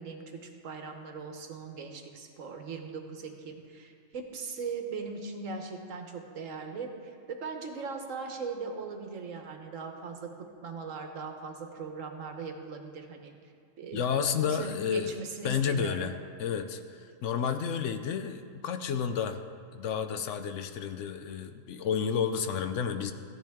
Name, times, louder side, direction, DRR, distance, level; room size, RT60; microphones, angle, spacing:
voice 1, 0.0-13.3 13.8-14.0 14.5-16.1, right 5 dB, 75° right, 4 dB, 1.4 m, -39 dB
voice 2, 13.9-15.2 15.4-16.1 16.4-19.4 19.7-23.1, left 7 dB, 70° left, 8 dB, 0.9 m, -31 dB
15.0 x 10.5 x 3.5 m, 2.3 s
omnidirectional pair, 1.4 m